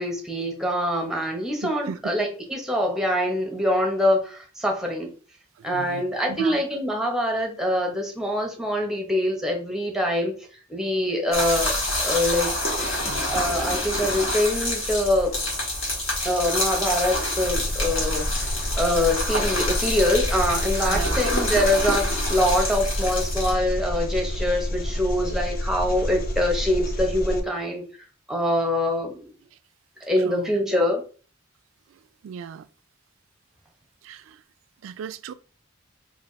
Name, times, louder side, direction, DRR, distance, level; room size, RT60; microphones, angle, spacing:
voice 1, 0.0-5.1 5.6-10.3 10.7-11.7 12.0-12.8 13.3-15.3 16.2-27.8 28.3-29.2 30.1-31.0, left 1 dB, 5° right, 0.8 m, -24 dB
voice 2, 1.6-2.0 5.7-6.0 6.3-6.6 13.0-13.4 20.9-21.3 30.2-30.6 32.2-32.7 34.0-34.4 34.8-35.3, right 7 dB, 75° right, 0.3 m, -36 dB
sound 1, 11.3-23.5, left 1 dB, 75° left, 1.6 m, -27 dB
Engine, 17.4-27.4, left 1 dB, 50° left, 0.6 m, -29 dB
4.1 x 2.5 x 3.1 m
head